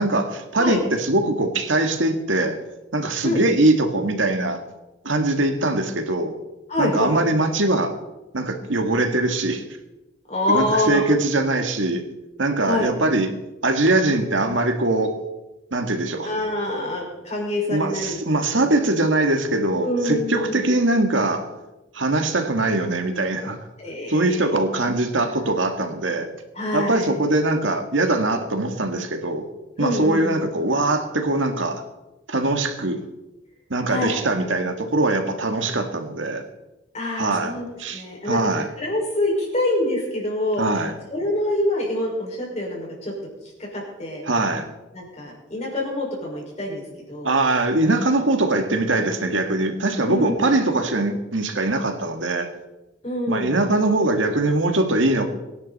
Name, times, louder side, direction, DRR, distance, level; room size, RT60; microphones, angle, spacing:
voice 1, 0.0-2.6 2.9-4.6 5.0-6.3 6.8-7.9 8.3-9.6 10.5-12.0 12.4-13.3 13.6-15.2 15.7-16.3 17.7-21.5 21.9-23.6 24.1-26.3 26.7-29.5 29.8-31.8 32.3-33.0 33.7-36.4 37.2-37.5 37.8-38.7 40.6-40.9 44.3-44.7 47.2-52.5 53.3-55.3, right 2 dB, 80° right, 6 dB, 1.8 m, -22 dB
voice 2, 6.7-7.2 10.3-11.0 12.6-12.9 16.2-18.6 19.8-20.7 23.8-24.4 24.8-24.9 25.3-25.5 26.5-27.1 29.8-30.5 33.9-34.2 36.9-37.7 37.9-40.8 41.1-43.1 43.6-44.2 44.9-47.6 50.0-50.6 53.0-53.6, left 1 dB, 35° left, -2 dB, 5.4 m, -26 dB
23.5 x 10.5 x 4.2 m, 1.0 s
head